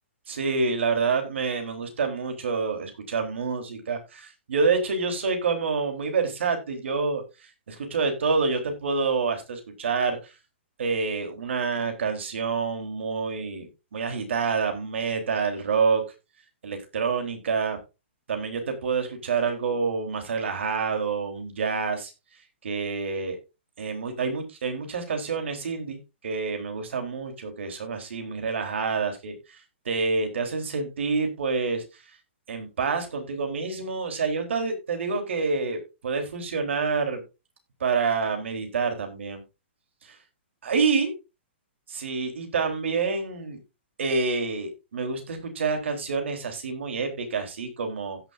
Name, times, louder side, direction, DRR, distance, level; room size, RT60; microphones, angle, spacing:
voice 1, 0.3-10.3 10.8-16.0 16.6-17.8 18.3-22.1 22.6-23.4 23.8-26.0 26.2-32.0 32.5-37.2 37.8-39.4 40.0-40.2 40.6-41.1 41.9-43.6 44.0-48.2, right 4 dB, 75° right, 5 dB, 3.8 m, -27 dB
16.0 x 7.0 x 2.6 m, 0.26 s
hypercardioid pair, 165°, 7 cm